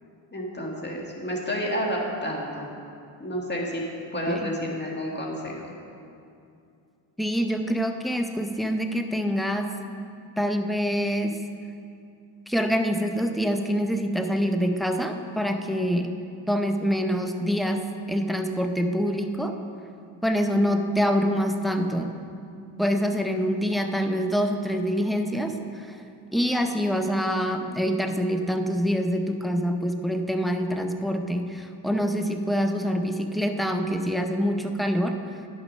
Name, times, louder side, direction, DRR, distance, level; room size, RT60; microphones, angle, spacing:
voice 1, 0.3-2.7 3.2-3.8 4.1-5.5, equal, 20° left, -1 dB, 1.8 m, -30 dB
voice 2, 7.2-9.7 10.4-11.4 12.5-16.1 16.5-19.5 20.2-22.1 22.8-26.0 26.3-35.2, equal, ahead, 5 dB, 0.5 m, -25 dB
10.0 x 6.4 x 5.2 m, 2.5 s
cardioid pair, 90°, 49 cm